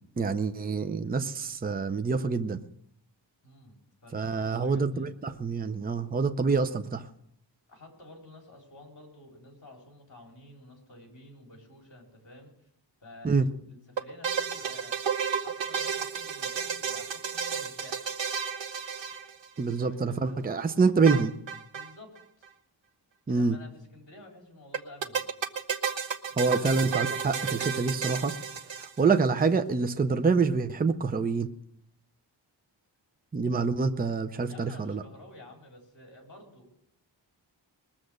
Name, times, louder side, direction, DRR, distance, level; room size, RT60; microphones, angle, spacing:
voice 1, 0.2-2.6 4.1-7.0 13.2-13.5 19.6-21.3 23.3-23.6 26.4-28.4 28.8-31.5 33.3-35.0, right 4 dB, 20° right, 9 dB, 0.5 m, -26 dB
voice 2, 3.4-5.1 7.7-12.5 13.0-15.0 15.4-18.2 19.6-20.4 21.7-22.2 23.3-25.2 26.2-26.9 34.4-36.7, left 2 dB, 40° left, 1 dB, 4.2 m, -51 dB
sound 1, 14.0-19.7 21.1-21.9 22.2-22.3 22.4-22.5 24.7-29.3, right 7 dB, 75° right, 1.0 m, -32 dB
20.5 x 7.3 x 6.5 m, 0.72 s
wide cardioid pair, 170°, 44 cm